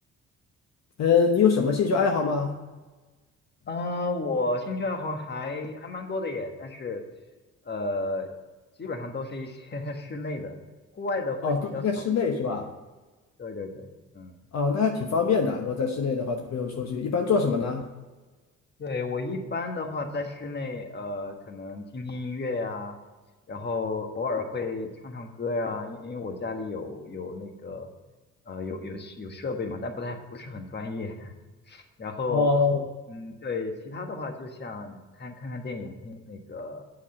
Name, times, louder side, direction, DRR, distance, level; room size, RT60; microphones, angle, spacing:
voice 1, 1.0-2.6 11.4-12.7 14.5-17.9 32.3-32.8, left 5 dB, 60° left, 3 dB, 1.1 m, -24 dB
voice 2, 3.7-7.0 7.6-8.3 8.8-10.5 10.9-12.1 13.4-14.4 18.8-23.0 23.5-27.9 28.5-31.3 31.7-32.5 33.1-36.8, left 3 dB, 35° left, 5 dB, 1.5 m, -33 dB
7.6 x 6.5 x 7.6 m, 1.2 s
cardioid pair, 90°, 30 cm